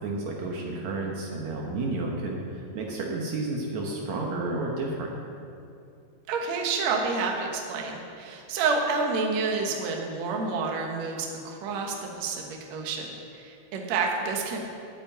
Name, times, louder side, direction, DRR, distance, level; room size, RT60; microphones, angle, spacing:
voice 1, 0.0-5.1, right 2 dB, 85° right, -1 dB, 1.6 m, -31 dB
voice 2, 6.3-14.6, right 4 dB, 65° right, 1 dB, 1.7 m, -29 dB
8.8 x 8.5 x 9.1 m, 2.5 s
omnidirectional pair, 5.1 m